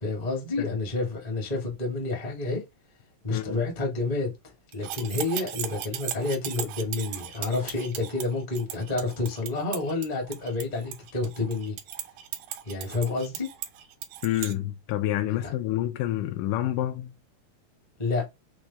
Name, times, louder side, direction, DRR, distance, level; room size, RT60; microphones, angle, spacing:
voice 1, 0.0-2.6 3.2-11.8 12.7-13.5 15.3-15.5 18.0-18.3, left 3 dB, 50° left, 0.4 m, -29 dB
voice 2, 3.3-3.6 14.2-17.1, left 13 dB, 80° left, 2.0 m, -28 dB
sound 1, 4.7-14.5, right 11 dB, 85° right, 2.4 m, -37 dB
6.0 x 2.0 x 3.4 m
omnidirectional pair, 3.9 m